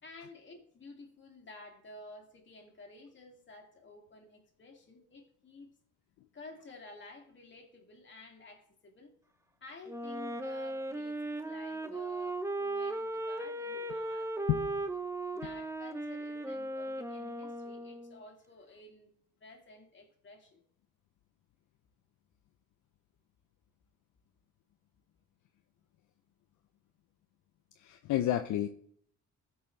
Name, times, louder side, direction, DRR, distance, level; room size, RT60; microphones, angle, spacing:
voice 1, 0.0-5.7 6.3-9.1 9.6-14.7 15.3-19.1 19.4-20.6, left 2 dB, 40° left, 2 dB, 2.3 m, -52 dB
Wind instrument woodwind instrument, 9.9-18.2, right 2 dB, 10° right, 0.7 m, -37 dB
voice 2, 27.8-28.7, left 12 dB, 75° left, 8 dB, 0.6 m, -30 dB
15.5 x 5.6 x 3.2 m, 0.63 s
cardioid pair, 90°, 30 cm